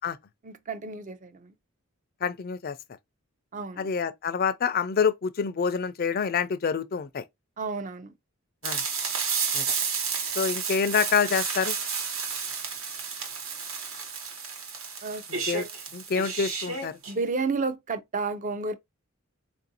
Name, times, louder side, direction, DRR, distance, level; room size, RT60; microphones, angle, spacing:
voice 1, 0.4-1.5 3.5-3.9 7.6-8.1 15.0-15.3 17.1-18.7, right 4 dB, 35° right, 0.5 m, -31 dB
voice 2, 2.2-2.8 3.8-7.2 8.6-8.8 9.5-9.6 10.4-11.8 15.3-15.7 15.9-16.9, left 6 dB, 45° left, 0.4 m, -27 dB
sound 1, 8.6-17.1, right 6 dB, 75° right, 1.2 m, -31 dB
4.4 x 2.5 x 2.7 m
head